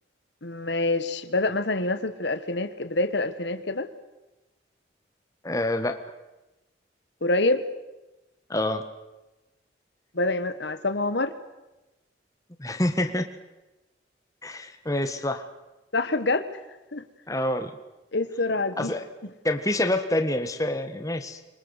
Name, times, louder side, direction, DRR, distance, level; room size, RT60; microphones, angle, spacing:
voice 1, 0.4-3.9 7.2-7.6 10.1-11.3 15.9-16.5 16.9-17.0 18.1-18.9, left 2 dB, 70° left, 11 dB, 1.5 m, -26 dB
voice 2, 5.4-6.0 8.5-8.8 12.6-13.3 14.4-15.5 17.3-17.7 18.8-19.0 19.4-21.4, left 1 dB, 15° left, 7 dB, 1.5 m, -27 dB
26.0 x 23.5 x 8.2 m, 1.0 s
head